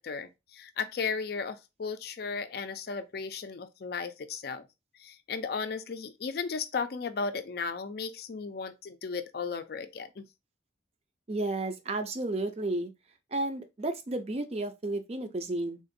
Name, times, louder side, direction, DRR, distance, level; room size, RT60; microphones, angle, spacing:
voice 1, 0.0-4.7 5.0-10.3, left 5 dB, 55° left, 0.4 m, -35 dB
voice 2, 11.3-12.9 13.3-15.8, right 2 dB, 35° right, 0.4 m, -32 dB
3.6 x 2.5 x 2.6 m
head